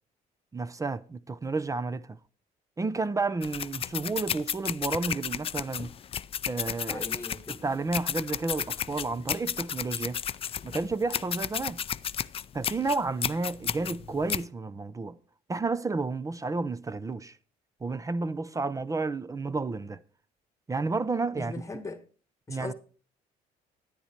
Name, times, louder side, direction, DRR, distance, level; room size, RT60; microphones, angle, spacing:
voice 1, 0.5-2.2 2.8-5.9 6.5-7.1 7.6-10.2 10.6-11.8 12.5-15.2 15.5-17.4 17.8-20.0 20.7-21.5 22.5-22.7, right 3 dB, 20° right, 0.5 m, -31 dB
sound 1, 3.4-14.5, left 9 dB, 35° left, 0.4 m, -33 dB
voice 2, 6.9-7.6 11.5-11.7 21.3-22.1 22.5-22.7, left 3 dB, 20° left, 1.4 m, -40 dB
10.0 x 10.0 x 4.4 m
cardioid pair, 110°, 17 cm